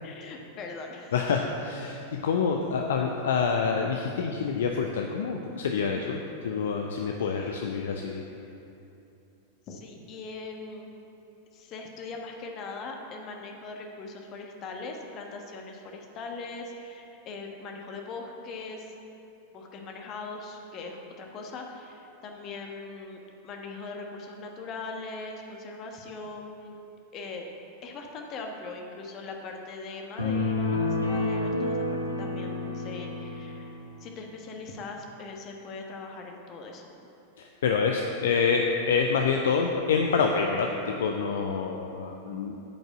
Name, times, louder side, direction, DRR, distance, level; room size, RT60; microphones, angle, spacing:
voice 1, 0.0-1.1 9.7-10.9 11.5-18.9 19.5-26.8 27.1-27.5 27.8-36.9, left 3 dB, 35° left, 2 dB, 1.2 m, -40 dB
voice 2, 1.1-8.2 37.4-42.6, left 5 dB, 60° left, 3 dB, 0.5 m, -27 dB
sound 1, 30.2-33.7, left 2 dB, 85° left, 1.3 m, -29 dB
8.9 x 5.2 x 7.4 m, 2.8 s
figure-of-eight pair, 90°, 0 cm